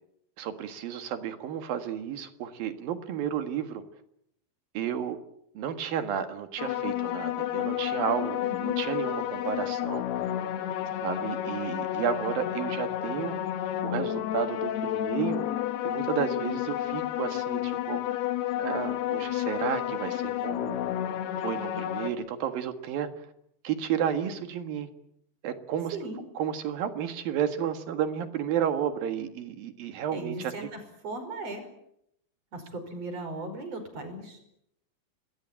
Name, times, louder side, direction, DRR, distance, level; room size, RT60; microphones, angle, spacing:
voice 1, 0.4-3.8 4.7-5.2 5.5-10.2 11.0-13.4 13.8-15.5 15.8-18.3 18.6-20.8 21.4-23.3 23.6-24.9 25.4-26.0 26.3-30.5, right 9 dB, 70° right, 9 dB, 3.4 m, -32 dB
sound 1, 6.6-22.1, left 12 dB, 90° left, 3.4 m, -31 dB
voice 2, 8.4-8.8 25.9-26.2 30.1-31.7 32.5-34.4, right 2 dB, 40° right, 7 dB, 6.2 m, -37 dB
27.0 x 20.5 x 9.0 m, 0.76 s
omnidirectional pair, 4.5 m